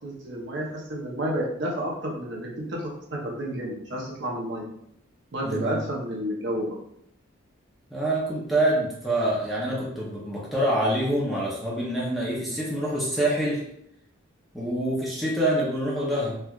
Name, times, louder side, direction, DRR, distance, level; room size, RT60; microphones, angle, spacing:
voice 1, 0.0-4.7 5.3-6.8, right 1 dB, 60° right, -2 dB, 0.7 m, -31 dB
voice 2, 5.4-5.8 7.9-13.6 14.5-16.4, right 1 dB, ahead, -7 dB, 0.6 m, -26 dB
4.4 x 2.3 x 2.3 m, 0.72 s
head